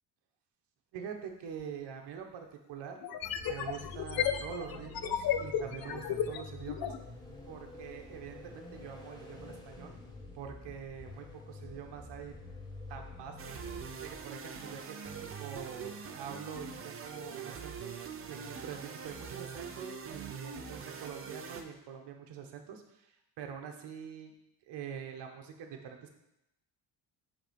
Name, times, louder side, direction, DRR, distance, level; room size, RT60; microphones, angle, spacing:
voice 1, 0.9-3.0 3.4-6.9 7.5-10.0 10.3-12.3 12.9-13.6 14.0-17.9 18.3-24.3 24.7-26.1, right 7 dB, 65° right, 4 dB, 1.1 m, -45 dB
sound 1, 1.6-1.7 3.0-7.0, left 9 dB, 55° left, 0.6 m, -33 dB
sound 2, 3.2-14.5, left 2 dB, 10° left, 0.9 m, -48 dB
sound 3, 13.4-21.6, right 6 dB, 30° right, 0.5 m, -43 dB
7.9 x 3.7 x 5.2 m, 0.87 s
cardioid pair, 175°, 44 cm